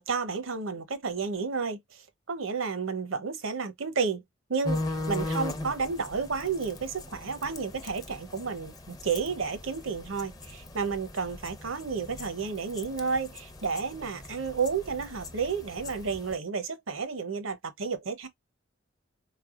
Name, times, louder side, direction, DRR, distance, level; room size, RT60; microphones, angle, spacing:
voice 1, 0.0-4.2 4.5-18.3, right 5 dB, 75° right, 0.8 m, -31 dB
sound 1, 4.6-16.4, left 2 dB, 20° left, 0.6 m, -39 dB
4.2 x 3.3 x 2.4 m
head